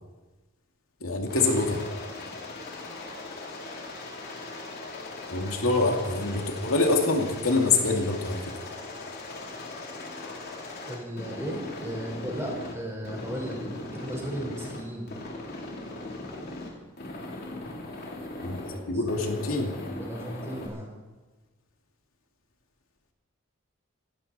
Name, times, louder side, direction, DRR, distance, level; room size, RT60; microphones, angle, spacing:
voice 1, 1.0-1.8 5.3-8.4 18.4-18.6 18.9-19.8, left 3 dB, 85° left, 2 dB, 2.5 m, -25 dB
Aircraft, 1.3-12.7 13.0-14.8 15.1-16.7 17.0-18.8 19.1-20.7, left 2 dB, 50° left, 3.4 m, -39 dB
voice 2, 10.9-15.1 18.9-19.0 20.0-20.9, right 1 dB, 15° right, -1 dB, 4.8 m, -35 dB
27.0 x 12.0 x 4.3 m, 1.3 s
head